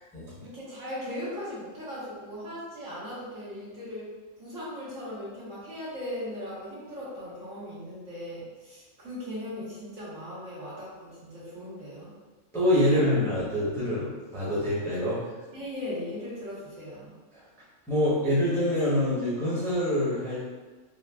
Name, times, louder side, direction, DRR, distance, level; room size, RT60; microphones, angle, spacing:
voice 1, 0.4-4.1 4.4-12.1 15.5-17.1, left 1 dB, 75° right, -9 dB, 1.5 m, -38 dB
voice 2, 12.5-15.2 17.9-20.5, left 1 dB, 5° left, -10 dB, 0.6 m, -25 dB
3.2 x 2.3 x 2.2 m, 1.3 s
omnidirectional pair, 1.3 m